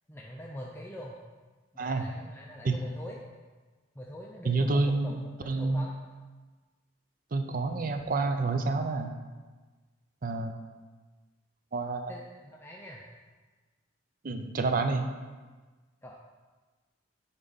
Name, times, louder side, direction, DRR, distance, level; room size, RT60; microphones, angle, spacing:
voice 1, 0.1-1.2 1.7-3.2 3.9-6.0 12.1-13.0 16.0-16.1, equal, 10° left, -2 dB, 0.4 m, -44 dB
voice 2, 4.5-5.9 7.3-9.1 10.2-10.5 11.7-12.1 14.2-15.1, right 3 dB, 45° right, 7 dB, 0.5 m, -28 dB
9.3 x 4.0 x 4.0 m, 1.3 s
head